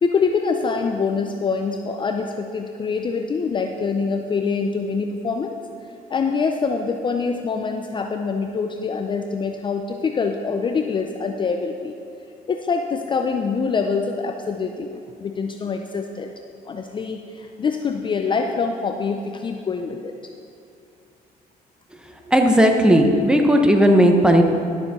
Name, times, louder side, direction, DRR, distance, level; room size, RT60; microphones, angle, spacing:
voice 1, 0.0-5.6 6.1-11.9 12.5-16.3 16.7-20.1, left 5 dB, 30° left, 4 dB, 0.5 m, -25 dB
voice 2, 22.3-24.4, equal, 5° right, 3 dB, 0.9 m, -15 dB
11.5 x 6.9 x 4.2 m, 2.5 s
cardioid pair, 110°, 17 cm